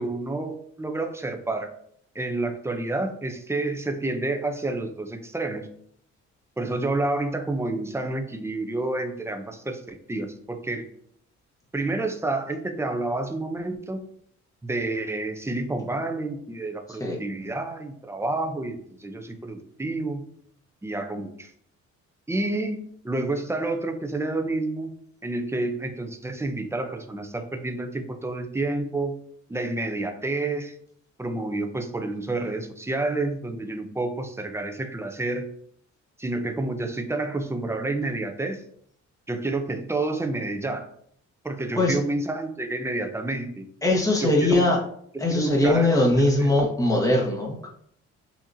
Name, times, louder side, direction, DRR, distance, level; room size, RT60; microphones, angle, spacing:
voice 1, 0.0-1.7 2.1-5.7 6.6-10.9 11.7-14.0 14.6-20.2 20.8-21.5 22.3-24.9 25.2-29.2 29.5-30.7 31.2-35.5 36.2-38.6 39.3-40.9 41.4-43.7 44.2-44.6 45.3-46.1 46.4-46.5, right 2 dB, 10° right, 6 dB, 0.6 m, -29 dB
voice 2, 16.9-17.2 41.8-42.0 43.8-44.8 45.2-47.7, left 2 dB, 10° left, -1 dB, 1.3 m, -21 dB
6.1 x 2.9 x 2.7 m, 0.65 s
cardioid pair, 90°, 30 cm